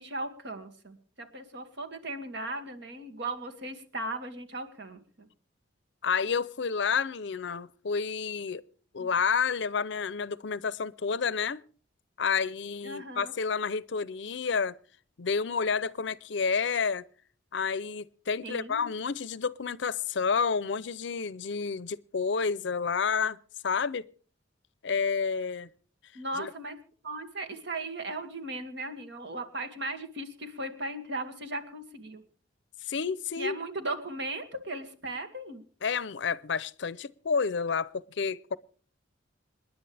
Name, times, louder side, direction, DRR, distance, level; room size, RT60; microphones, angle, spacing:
voice 1, 0.0-5.3 9.0-9.1 12.8-13.3 18.4-18.9 26.1-26.8 27.0-32.2 33.4-35.6, right 2 dB, 60° right, 2.2 m, -37 dB
voice 2, 6.0-8.6 8.9-11.6 12.2-14.7 15.2-17.0 17.5-23.4 23.6-24.0 24.8-25.7 26.4-26.5 32.9-33.6 35.8-38.6, left 5 dB, 65° left, 0.6 m, -30 dB
27.5 x 10.5 x 3.4 m
head